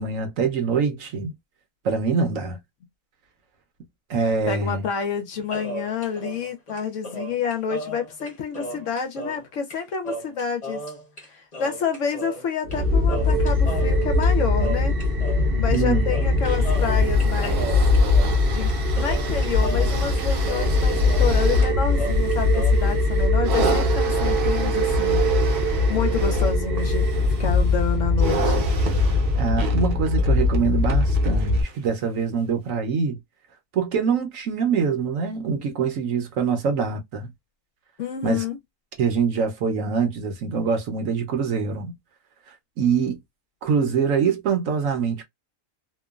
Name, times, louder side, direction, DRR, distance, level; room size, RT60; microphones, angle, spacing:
voice 1, 0.0-1.3 1.8-2.6 4.1-4.9 15.7-16.1 29.4-33.2 33.7-37.3 38.2-38.4 39.0-41.9 42.5-43.2 43.6-45.2, right 5 dB, 65° right, 1.0 m, -24 dB
voice 2, 4.5-10.8 11.2-15.0 15.6-17.7 18.4-27.1 27.4-28.7 38.0-38.6, left 6 dB, 65° left, 0.8 m, -29 dB
sound 1, 5.5-9.5 9.7-9.8 10.0-11.3 11.5-12.8 13.1-15.5 15.7-21.4 21.6-22.7, right 1 dB, 30° left, 1.0 m, -35 dB
sound 2, 12.6-31.6, left 2 dB, 50° right, 0.8 m, -21 dB
sound 3, 16.4-31.9 32.7-32.8, right 5 dB, 80° right, 1.3 m, -32 dB
2.9 x 2.1 x 2.3 m
omnidirectional pair, 1.6 m